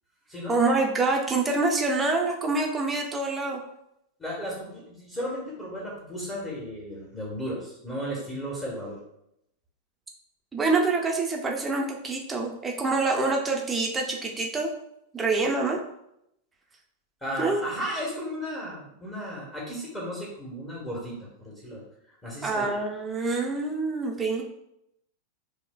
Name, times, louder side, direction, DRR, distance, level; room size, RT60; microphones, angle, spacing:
voice 1, 0.5-3.6 10.5-14.7 15.1-15.8 17.4-17.6 22.4-24.4, right 3 dB, 15° right, 0 dB, 0.7 m, -26 dB
voice 2, 4.2-9.0 17.2-21.8 22.2-22.7, equal, 15° left, -5 dB, 1.2 m, -34 dB
6.1 x 2.3 x 2.3 m, 0.79 s
figure-of-eight pair, 90°, 0 cm